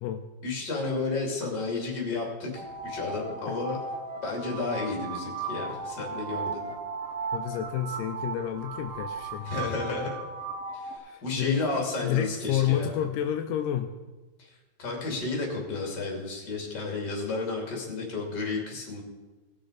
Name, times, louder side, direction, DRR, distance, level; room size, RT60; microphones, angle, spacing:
voice 1, 0.4-3.8 4.2-6.7 9.4-10.2 10.7-13.0 14.4-14.5 14.8-19.0, left 3 dB, 30° left, -1 dB, 3.0 m, -32 dB
sound 1, 2.6-11.0, right 4 dB, 65° right, 1.5 m, -36 dB
voice 2, 7.3-9.5 11.0-13.9, left 10 dB, 85° left, 6 dB, 1.9 m, -30 dB
19.0 x 6.4 x 5.0 m, 1.2 s
omnidirectional pair, 4.5 m